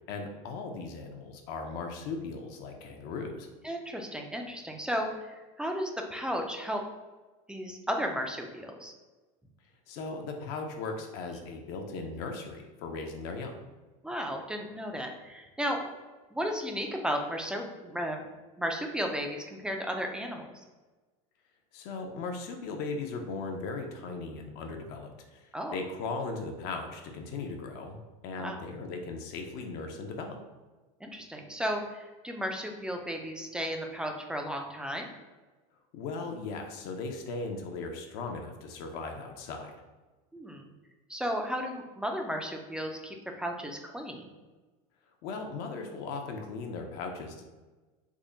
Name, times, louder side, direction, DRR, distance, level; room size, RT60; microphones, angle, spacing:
voice 1, 0.1-3.5 9.9-13.6 21.7-28.0 28.2-30.4 35.9-39.8 45.2-47.4, left 3 dB, 60° left, 3 dB, 0.5 m, -38 dB
voice 2, 3.6-6.8 7.5-8.9 14.0-15.8 16.3-18.2 18.6-20.5 25.5-25.8 28.4-28.6 31.0-35.1 40.3-40.7 41.1-44.3, equal, 5° right, 3 dB, 0.3 m, -34 dB
3.6 x 2.1 x 3.8 m, 1.2 s
supercardioid pair, 125°, 18 cm